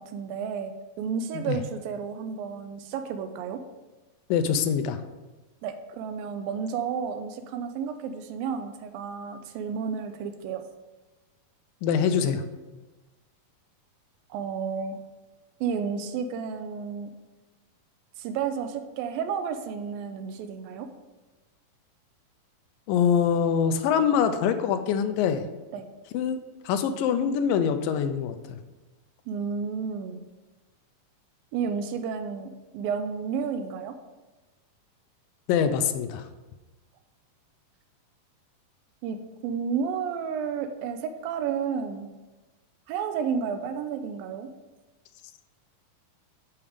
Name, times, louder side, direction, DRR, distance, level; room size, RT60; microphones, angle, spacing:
voice 1, 0.0-3.6 5.6-10.6 14.3-15.0 15.6-17.1 18.2-20.9 25.7-25.9 29.3-30.2 31.5-33.9 39.0-39.2 39.4-42.1 42.9-44.5, right 6 dB, 85° right, 8 dB, 2.4 m, -31 dB
voice 2, 4.3-5.0 11.8-12.4 22.9-25.4 26.1-26.4 26.7-28.6 35.5-36.2, left 7 dB, 80° left, 9 dB, 2.2 m, -24 dB
7.2 x 5.9 x 5.0 m, 1.2 s
omnidirectional pair, 4.1 m